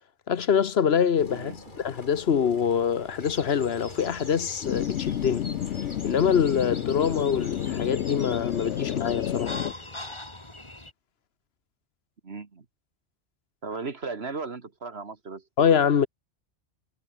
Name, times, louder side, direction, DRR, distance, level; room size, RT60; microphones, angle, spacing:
voice 1, 0.3-5.5 6.0-9.6 15.6-16.1, left 7 dB, 65° left, 1.3 m, -24 dB
Engine, 1.2-10.2, left 2 dB, 45° left, 3.6 m, -47 dB
sound 1, 3.2-10.9, left 1 dB, 25° left, 2.9 m, -43 dB
sound 2, 4.6-9.7, left 10 dB, 90° left, 1.0 m, -30 dB
voice 2, 12.2-12.7 13.6-15.4, right 4 dB, 70° right, 2.1 m, -36 dB
omnidirectional pair, 1.1 m